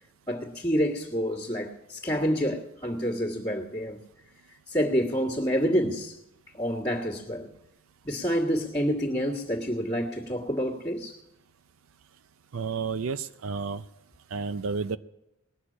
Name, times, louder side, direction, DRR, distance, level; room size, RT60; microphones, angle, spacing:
voice 1, 0.3-4.0 4.7-6.1 6.5-7.5 8.0-11.1, equal, 20° left, 1.7 m, -28 dB
voice 2, 12.5-13.2 13.4-13.8 14.3-15.0, right 5 dB, 70° right, 0.5 m, -30 dB
19.5 x 6.6 x 8.5 m
head